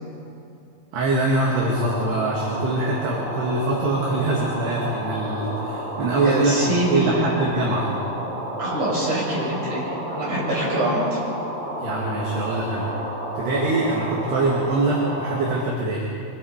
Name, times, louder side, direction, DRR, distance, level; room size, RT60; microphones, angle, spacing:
voice 1, 0.9-7.9 11.8-12.9 13.4-16.1, right 2 dB, 65° right, -3 dB, 4.3 m, -23 dB
sound 1, 1.7-15.6, right 1 dB, 80° right, 7.0 m, -31 dB
voice 2, 6.1-7.3 8.6-11.2, right 1 dB, 35° right, -5 dB, 7.8 m, -25 dB
25.0 x 21.5 x 5.2 m, 2.8 s
omnidirectional pair, 5.4 m